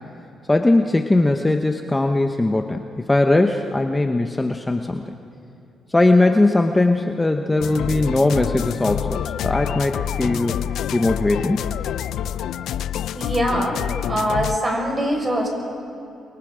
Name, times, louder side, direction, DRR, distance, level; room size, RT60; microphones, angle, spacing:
voice 1, 0.5-2.8 3.1-5.0 5.9-10.6 10.9-11.7, left 2 dB, 15° left, 5 dB, 1.0 m, -19 dB
sound 1, 7.6-14.6, left 10 dB, 75° left, 0.5 m, -27 dB
voice 2, 13.1-13.8 14.1-15.5, equal, 25° right, 1 dB, 6.0 m, -22 dB
29.0 x 23.0 x 5.1 m, 2.8 s
cardioid pair, 90°, 0 cm